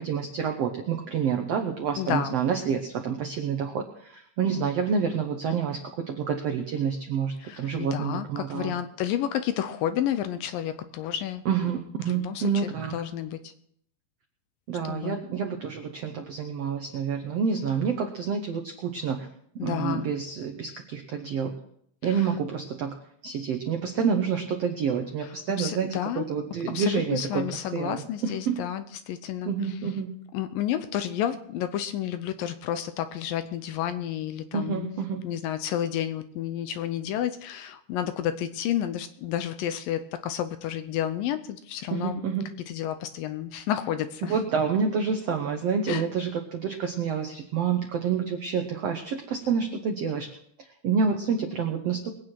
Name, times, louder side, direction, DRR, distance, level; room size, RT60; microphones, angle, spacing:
voice 1, 0.0-8.8 11.4-13.0 14.7-19.3 19.5-21.6 22.0-22.9 23.2-27.5 27.7-28.6 29.4-30.1 34.5-35.2 41.9-42.5 44.2-50.3 50.8-52.1, right 6 dB, 85° right, 4 dB, 1.4 m, -28 dB
voice 2, 2.0-2.4 7.4-11.4 12.0-13.5 14.8-15.2 19.6-20.1 22.1-22.2 25.2-25.3 25.6-26.3 26.7-29.5 30.3-34.9 35.2-42.2 42.7-44.4 45.9-46.0, left 11 dB, 80° left, 10 dB, 2.2 m, -31 dB
22.5 x 8.9 x 4.6 m, 0.69 s
omnidirectional pair, 4.4 m